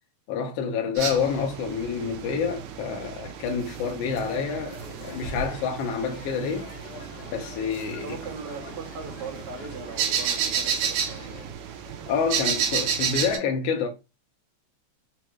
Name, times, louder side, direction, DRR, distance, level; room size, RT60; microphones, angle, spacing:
voice 1, 0.3-6.7 7.3-8.2 12.1-13.9, left 6 dB, 75° left, 1.5 m, -28 dB
sound 1, 1.0-13.4, right 7 dB, 80° right, 2.0 m, -32 dB
sound 2, 4.1-11.5, left 6 dB, 55° left, 2.1 m, -46 dB
voice 2, 8.0-11.4, right 4 dB, 65° right, 1.6 m, -39 dB
5.0 x 2.3 x 3.0 m
omnidirectional pair, 3.3 m